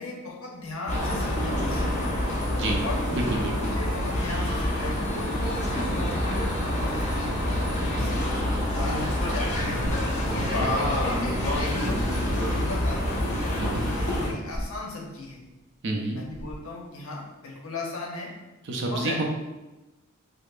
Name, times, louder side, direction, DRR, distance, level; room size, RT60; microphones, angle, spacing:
voice 1, 0.0-1.9 2.8-5.6 6.7-7.3 7.8-8.3 8.6-9.6 10.2-12.0 12.3-15.4 16.1-18.3 18.8-19.2, left 3 dB, 80° left, -2 dB, 0.8 m, -37 dB
sound 1, 0.9-14.3, left 1 dB, 35° left, 0.7 m, -27 dB
voice 2, 3.1-3.7 10.3-10.7 13.6-13.8 15.8-16.3 18.6-19.2, right 2 dB, 60° right, 1 dB, 0.5 m, -29 dB
sound 2, 9.8-11.0 11.3-12.1 14.2-15.5 16.2-17.0, equal, 80° right, 1.0 m, -39 dB
4.9 x 2.0 x 2.4 m, 1.1 s
head